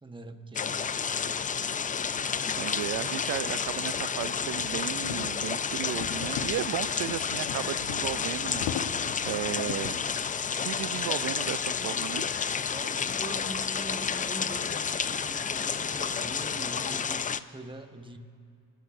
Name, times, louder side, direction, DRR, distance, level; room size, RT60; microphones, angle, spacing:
voice 1, 0.0-0.8 12.5-18.2, right 2 dB, 10° right, 6 dB, 1.3 m, -43 dB
sound 1, 0.5-17.4, left 6 dB, 20° left, 0.4 m, -31 dB
voice 2, 0.7-1.0 2.2-8.7 9.3-10.0 10.5-12.3, right 15 dB, 50° right, 21 dB, 0.4 m, -35 dB
sound 2, 1.3-1.4 2.1-10.1, left 8 dB, 65° left, 1.1 m, -40 dB
sound 3, 2.8-17.1, left 7 dB, 85° left, 1.4 m, -54 dB
25.5 x 14.5 x 2.7 m, 2.5 s
supercardioid pair, 65°, 42 cm